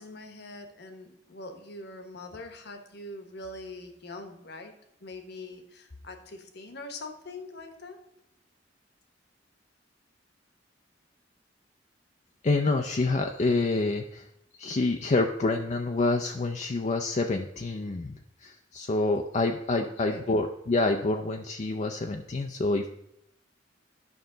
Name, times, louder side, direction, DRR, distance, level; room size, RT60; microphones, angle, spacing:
voice 1, 0.0-4.7 5.0-8.0 19.7-20.3, left 2 dB, 60° left, 6 dB, 1.2 m, -43 dB
voice 2, 12.4-14.3 14.5-22.9, left 2 dB, 40° left, 4 dB, 0.4 m, -27 dB
11.0 x 5.7 x 3.9 m, 0.80 s
head